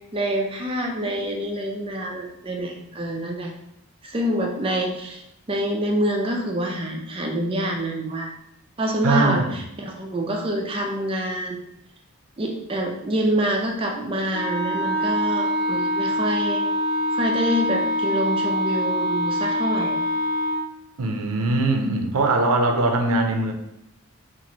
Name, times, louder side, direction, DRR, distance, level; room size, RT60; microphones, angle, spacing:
voice 1, 0.1-3.5 4.0-5.2 5.5-8.4 8.8-11.6 12.4-16.6 17.1-20.0, equal, 25° right, 1 dB, 0.4 m, -26 dB
voice 2, 9.0-9.6 21.0-23.5, right 2 dB, 80° right, 4 dB, 0.5 m, -21 dB
Wind instrument woodwind instrument, 14.3-20.7, equal, 50° left, 0.3 m, -24 dB
3.0 x 2.5 x 3.8 m, 0.79 s
head